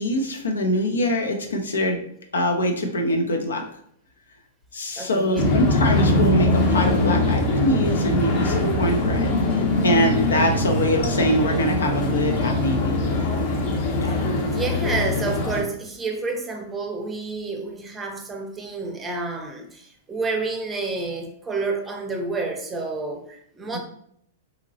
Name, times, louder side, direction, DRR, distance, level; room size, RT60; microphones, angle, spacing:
voice 1, 0.0-2.0 2.3-3.6 4.7-13.3 14.0-14.4, left 1 dB, 85° left, 3 dB, 0.6 m, -24 dB
voice 2, 5.0-5.6 10.5-10.6 14.0-23.8, right 3 dB, 15° right, 2 dB, 0.6 m, -30 dB
sound 1, 5.4-15.6, left 1 dB, 50° left, 0.7 m, -22 dB
2.9 x 2.8 x 2.7 m, 0.68 s
hypercardioid pair, 115°, 0 cm